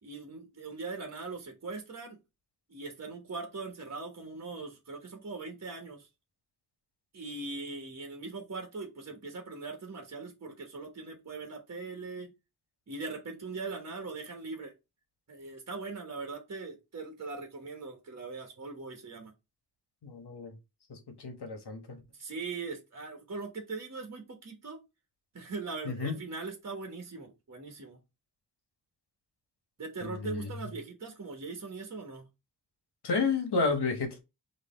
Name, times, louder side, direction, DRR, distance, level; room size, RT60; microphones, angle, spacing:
voice 1, 0.0-2.2 2.7-6.1 7.1-12.3 12.9-14.7 15.3-19.3 22.1-24.8 25.3-28.0 29.8-32.3, right 3 dB, 40° right, 1.3 m, -40 dB
voice 2, 20.0-20.5 20.9-22.0 25.8-26.2 30.0-30.5 33.0-34.2, left 4 dB, 75° left, 1.5 m, -31 dB
4.1 x 3.1 x 4.2 m
wide cardioid pair, 150°, 40 cm